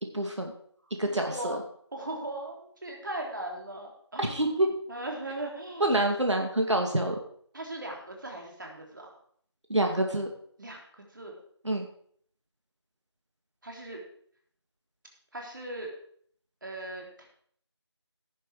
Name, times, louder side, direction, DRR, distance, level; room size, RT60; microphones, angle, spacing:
voice 1, 0.1-0.5 1.0-1.6 4.2-4.7 5.8-7.2 9.7-10.3 11.6-11.9, right 1 dB, 80° right, 2 dB, 2.3 m, -26 dB
voice 2, 1.1-1.6 1.9-6.0 7.5-9.1 10.6-11.3 13.6-14.0 15.3-15.9 16.6-17.3, right 1 dB, 45° right, 0 dB, 3.4 m, -39 dB
16.5 x 7.8 x 4.9 m, 0.62 s
figure-of-eight pair, 170°, 15 cm